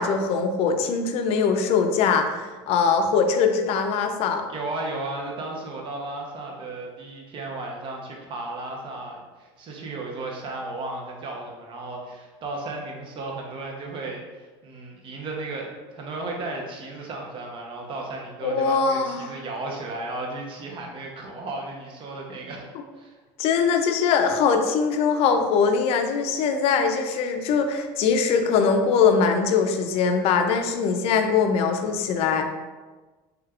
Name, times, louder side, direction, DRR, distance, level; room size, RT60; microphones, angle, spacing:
voice 1, 0.0-4.4 18.4-19.3 23.4-32.5, left 5 dB, 55° left, 6 dB, 0.4 m, -22 dB
voice 2, 4.5-22.7 23.0-23.1, right 2 dB, 45° right, 0 dB, 0.8 m, -34 dB
3.2 x 3.2 x 2.4 m, 1.3 s
supercardioid pair, 110°, 12 cm